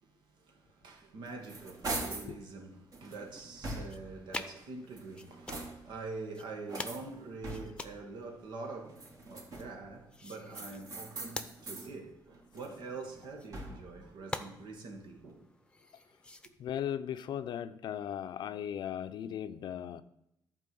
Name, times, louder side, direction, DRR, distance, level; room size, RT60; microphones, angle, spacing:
voice 1, 0.0-15.5, right 3 dB, 75° right, 1.7 m, -45 dB
sound 1, 1.0-2.4 2.9-4.2 4.8-6.0 6.7-7.9 8.8-9.9 10.5-11.9 12.3-14.0, right 2 dB, 50° right, 2.4 m, -42 dB
sound 2, 3.4-16.5, left 2 dB, 10° left, 0.8 m, -48 dB
voice 2, 16.6-20.0, left 9 dB, 75° left, 0.6 m, -37 dB
11.5 x 4.6 x 7.6 m
cardioid pair, 95°, 8 cm